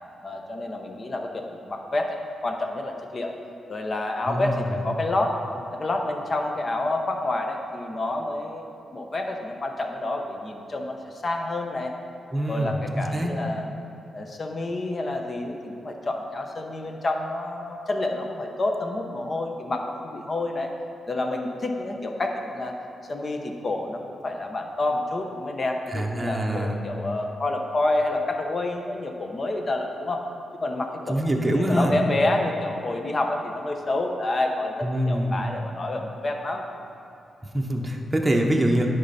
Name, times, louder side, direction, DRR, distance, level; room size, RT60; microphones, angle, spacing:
voice 1, 0.2-3.3 3.7-5.3 5.7-11.9 12.5-13.8 14.1-20.7 21.1-22.7 23.1-30.2 30.6-36.6, left 2 dB, 40° left, 3 dB, 0.9 m, -28 dB
voice 2, 4.3-4.7 12.3-13.3 25.9-26.8 31.1-31.9 34.8-35.4 37.5-38.9, right 1 dB, 15° right, 0 dB, 0.9 m, -24 dB
10.0 x 5.4 x 4.2 m, 2.7 s
cardioid pair, 80°, 0 cm